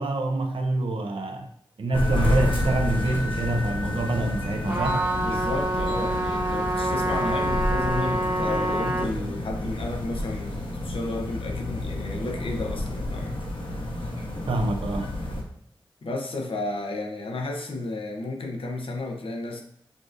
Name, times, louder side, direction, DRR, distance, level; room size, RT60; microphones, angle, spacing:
voice 1, 0.0-1.5 1.8-5.0 14.5-15.1, right 2 dB, 75° right, 0.6 m, -26 dB
sound 1, 1.9-15.4, left 1 dB, 70° left, 1.0 m, -30 dB
Trumpet, 4.7-9.1, right 1 dB, 45° right, 1.2 m, -27 dB
voice 2, 5.2-13.4 16.0-19.6, left 2 dB, 85° left, 0.7 m, -32 dB
6.2 x 2.5 x 2.5 m
wide cardioid pair, 80°, 9 cm